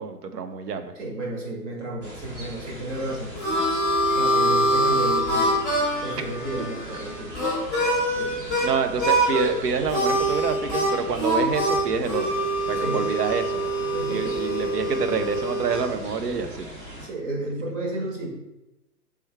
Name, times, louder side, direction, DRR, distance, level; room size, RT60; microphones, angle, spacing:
voice 1, 0.0-0.9 8.6-12.4 12.7-13.4 14.1-16.7, right 5 dB, 70° right, 8 dB, 0.7 m, -27 dB
voice 2, 0.9-3.4 4.2-5.6 6.0-7.3 8.2-8.5 12.8-13.0 13.8-14.4 17.0-18.3, right 1 dB, 45° right, -1 dB, 1.4 m, -32 dB
sound 1, 2.0-17.1, equal, 20° right, 0.8 m, -40 dB
Harmonica, 2.9-8.7 9.0-9.5 9.9-15.9, right 1 dB, ahead, 1.0 m, -24 dB
3.4 x 3.2 x 4.6 m, 0.96 s
hypercardioid pair, 140°, 50 cm